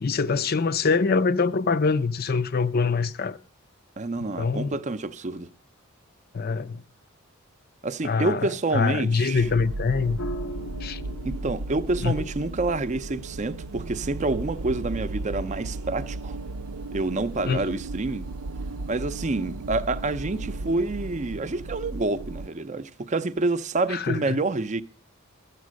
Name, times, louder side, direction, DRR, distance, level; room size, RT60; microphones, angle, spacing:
voice 1, 0.0-3.4 4.4-4.8 6.3-6.8 8.0-10.2 10.8-11.0 12.0-12.1 17.5-17.6 23.9-24.4, left 4 dB, 45° left, 0.5 m, -24 dB
voice 2, 4.0-5.5 7.8-9.5 11.2-16.4 16.9-18.3 18.9-24.8, right 2 dB, 35° right, 0.6 m, -28 dB
sound 1, 9.4-22.5, right 2 dB, 85° right, 0.6 m, -35 dB
sound 2, 10.2-18.7, equal, 90° left, 1.1 m, -42 dB
13.0 x 8.4 x 6.3 m
head